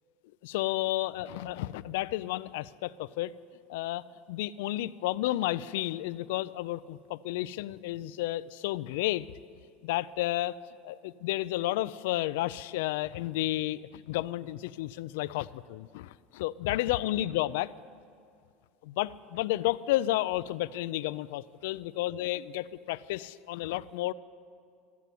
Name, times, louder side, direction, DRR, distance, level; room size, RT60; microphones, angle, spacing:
voice 1, 0.4-3.3 3.7-9.3 9.8-10.6 10.8-17.7 18.8-24.1, left 16 dB, 80° left, 15 dB, 0.3 m, -32 dB
13.0 x 8.1 x 9.2 m, 2.3 s
supercardioid pair, 155°, 0 cm